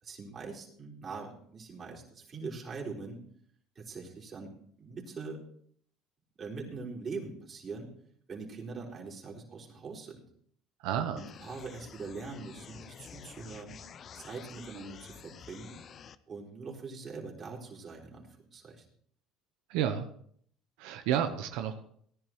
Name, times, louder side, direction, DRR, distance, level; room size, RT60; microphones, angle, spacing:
voice 1, 0.0-3.2 3.8-4.5 4.8-5.4 6.4-7.9 8.3-10.2 11.1-13.8 14.2-15.7 16.3-18.9, right 4 dB, 35° right, -2 dB, 4.1 m, -42 dB
voice 2, 10.8-11.2 19.7-20.1 20.8-21.8, right 9 dB, 75° right, 6 dB, 0.9 m, -30 dB
sound 1, 11.2-16.2, left 8 dB, 45° left, 0.6 m, -50 dB
18.0 x 11.0 x 3.1 m, 0.62 s
supercardioid pair, 90°, 0 cm